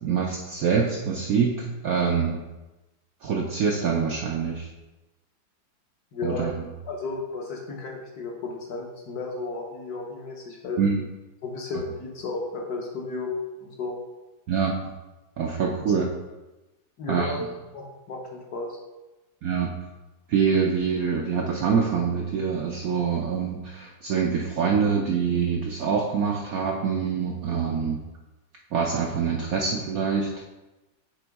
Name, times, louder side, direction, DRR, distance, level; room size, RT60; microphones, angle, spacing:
voice 1, 0.0-2.4 3.2-4.7 6.2-6.6 10.8-11.0 14.5-14.9 15.4-16.1 17.1-17.5 19.4-19.7 20.3-28.0 28.7-30.3, right 6 dB, 70° right, 0 dB, 0.8 m, -25 dB
voice 2, 6.1-6.5 6.8-10.8 11.4-14.0 15.9-16.0 17.0-17.4 17.7-18.7, left 3 dB, 60° left, 0 dB, 1.3 m, -33 dB
6.9 x 4.3 x 3.5 m, 1.1 s
omnidirectional pair, 2.1 m